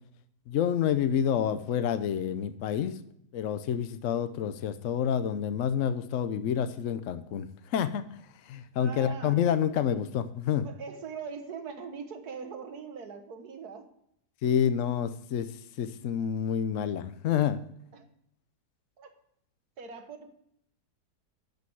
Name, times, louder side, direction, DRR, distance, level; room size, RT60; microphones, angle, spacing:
voice 1, 0.5-3.0 3.3-8.0 8.5-10.7 14.4-15.5 15.8-17.6, left 9 dB, 65° left, 11 dB, 0.8 m, -28 dB
voice 2, 8.8-9.4 10.6-13.9 17.9-18.1 19.0-19.1 19.8-20.3, right 5 dB, 65° right, 6 dB, 1.8 m, -41 dB
12.0 x 5.4 x 7.8 m, 0.73 s
omnidirectional pair, 1.8 m